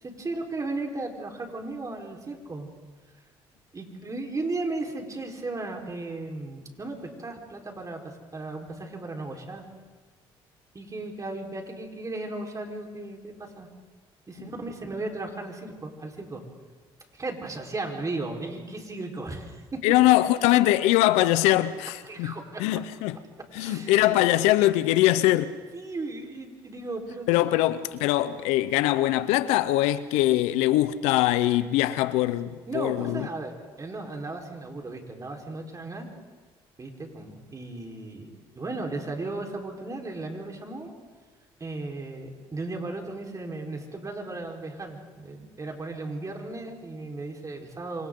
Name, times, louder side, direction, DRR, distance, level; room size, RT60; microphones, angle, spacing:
voice 1, 0.0-2.7 3.7-9.6 10.7-13.7 14.3-16.4 17.1-20.0 22.1-22.6 23.5-24.3 25.7-27.5 32.7-36.1 36.8-40.9 41.6-48.1, right 2 dB, 30° right, 4.3 m, -35 dB
voice 2, 19.8-23.2 23.5-25.5 27.3-33.3, left 15 dB, 85° left, 0.8 m, -22 dB
27.5 x 24.5 x 3.9 m
supercardioid pair, 65°, 11 cm